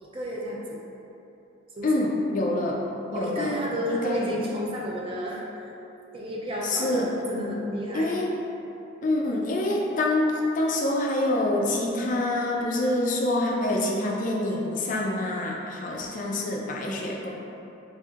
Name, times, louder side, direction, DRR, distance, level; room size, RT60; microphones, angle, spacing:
voice 1, 0.0-0.8 1.8-2.0 3.1-5.7 6.1-8.1, equal, 25° right, -3 dB, 0.4 m, -31 dB
voice 2, 1.8-2.8 3.1-3.5 3.9-4.3 6.6-7.1 7.9-8.3 9.0-17.3, left 1 dB, 40° left, -1 dB, 0.3 m, -26 dB
6.5 x 2.5 x 2.4 m, 2.9 s
head